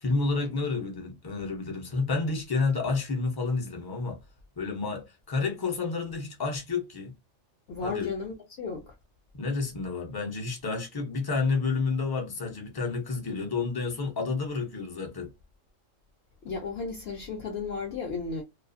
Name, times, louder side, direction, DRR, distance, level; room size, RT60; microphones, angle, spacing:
voice 1, 0.0-4.2 4.6-7.1 7.8-8.1 9.3-15.3, left 4 dB, 30° left, 0.4 m, -30 dB
voice 2, 7.7-8.9 16.4-18.4, left 4 dB, 60° left, 0.7 m, -34 dB
2.4 x 2.3 x 2.5 m
omnidirectional pair, 1.4 m